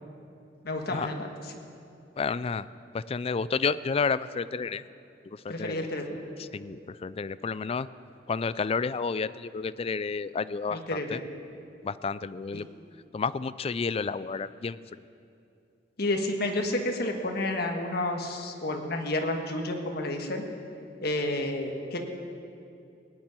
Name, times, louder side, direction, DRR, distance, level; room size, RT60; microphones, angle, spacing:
voice 1, 0.6-1.5 5.5-6.2 10.7-11.2 16.0-20.4 21.0-22.0, left 1 dB, 55° left, 3 dB, 1.5 m, -30 dB
voice 2, 2.2-2.6 2.9-4.8 5.4-5.9 6.5-7.9 8.3-11.2 11.8-12.7 13.1-14.8, left 5 dB, 30° left, 16 dB, 0.3 m, -30 dB
18.0 x 7.4 x 9.7 m, 2.6 s
head